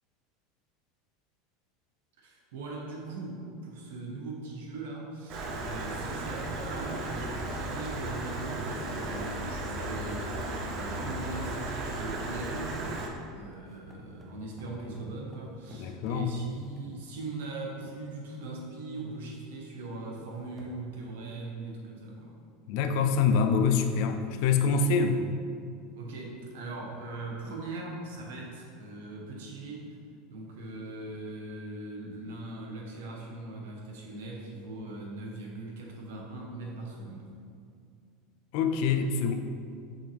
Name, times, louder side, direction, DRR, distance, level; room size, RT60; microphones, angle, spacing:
voice 1, 2.2-22.3 25.9-29.9 30.3-37.3, right 2 dB, 90° right, -1 dB, 1.3 m, -40 dB
Stream, 5.3-13.1, right 2 dB, 40° right, 0.8 m, -35 dB
sound 1, 13.2-17.7 18.3-18.4 18.7-19.0 19.3-19.4 20.0-20.1 20.4-20.7, left 1 dB, 5° right, 0.7 m, -51 dB
voice 2, 15.7-16.3 22.7-25.2 38.5-39.3, left 5 dB, 55° left, 7 dB, 0.5 m, -25 dB
5.8 x 5.5 x 3.5 m, 2.4 s
supercardioid pair, 160°, 0 cm